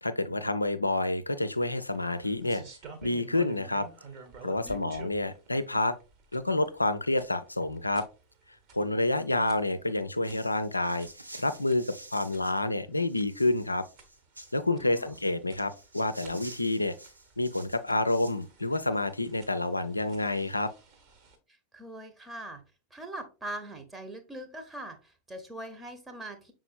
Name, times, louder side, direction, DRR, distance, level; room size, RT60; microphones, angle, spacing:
voice 1, 0.0-2.6 3.0-3.9 4.4-5.9 6.3-8.0 8.7-11.1 11.4-13.8 14.5-17.0 17.4-20.7, left 2 dB, 85° left, 0.4 m, -28 dB
sound 1, 1.5-21.4, right 4 dB, 40° right, 1.0 m, -52 dB
voice 2, 4.6-5.0 14.7-15.1 21.7-22.6 22.9-26.5, right 1 dB, 10° right, 0.8 m, -42 dB
sound 2, 10.2-12.6 12.9-14.6 15.0-18.5, right 2 dB, 85° right, 0.5 m, -49 dB
5.9 x 3.7 x 2.4 m
figure-of-eight pair, 90°, 0 cm